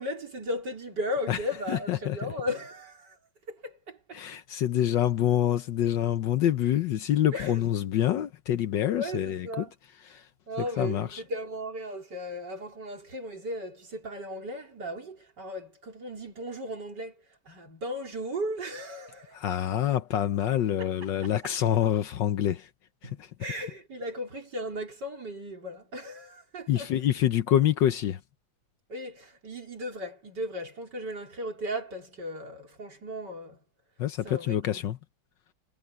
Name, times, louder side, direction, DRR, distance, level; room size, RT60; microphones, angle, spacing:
voice 1, 0.0-3.2 3.5-4.2 7.3-7.6 9.0-9.7 10.5-19.4 20.8-20.9 23.0-26.9 28.9-33.6 34.2-34.8, equal, 55° right, 4.5 m, -36 dB
voice 2, 1.7-2.3 4.1-9.7 10.1-10.3 10.8-11.2 19.3-22.7 23.0-23.3 26.7-28.2 34.0-35.0, left 11 dB, 65° left, 1.4 m, -26 dB
omnidirectional pair, 2.3 m